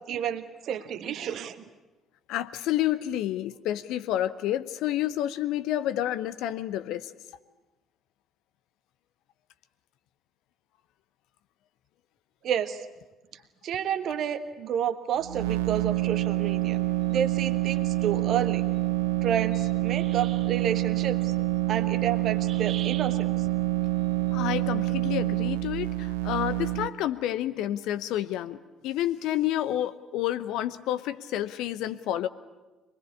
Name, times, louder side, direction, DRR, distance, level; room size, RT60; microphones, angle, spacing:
voice 1, 0.1-1.6 12.4-12.8 13.6-16.8 17.1-18.6 19.2-21.3 21.7-23.3, right 9 dB, 50° right, 10 dB, 1.4 m, -30 dB
voice 2, 2.3-7.1 24.3-28.6 28.8-32.3, left 12 dB, 60° left, 12 dB, 0.8 m, -29 dB
sound 1, 15.2-26.9, right 17 dB, 70° right, 0.7 m, -27 dB
24.0 x 20.5 x 8.6 m, 1.2 s
figure-of-eight pair, 50°, 0 cm